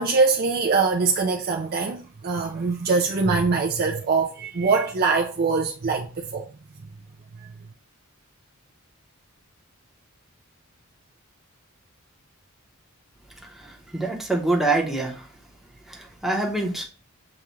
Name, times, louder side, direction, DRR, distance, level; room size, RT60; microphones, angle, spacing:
voice 1, 0.0-6.5, right 4 dB, 45° right, 0.4 m, -23 dB
voice 2, 13.4-15.3 15.9-16.8, right 2 dB, ahead, 0.9 m, -26 dB
6.9 x 2.4 x 3.0 m
head